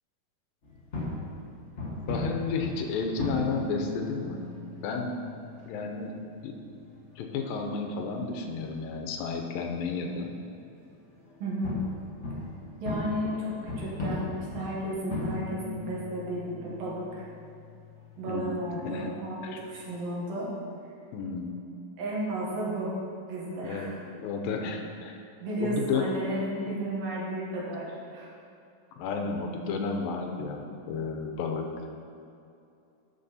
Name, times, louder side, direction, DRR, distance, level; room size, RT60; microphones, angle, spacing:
sound 1, 0.6-20.0, left 2 dB, 65° left, 0.6 m, -39 dB
voice 1, 2.1-4.5 4.8-5.2 5.7-6.6 7.2-10.3 18.3-19.1 19.4-19.6 21.1-21.7 23.6-25.3 25.6-26.1 29.0-31.7, left 4 dB, 85° left, 3 dB, 2.5 m, -32 dB
voice 2, 11.4-11.8 12.8-17.3 18.2-20.5 22.0-22.9 23.3-24.0 25.4-28.3, right 1 dB, 70° right, -5 dB, 3.5 m, -33 dB
12.0 x 6.8 x 4.2 m, 2.6 s
omnidirectional pair, 4.1 m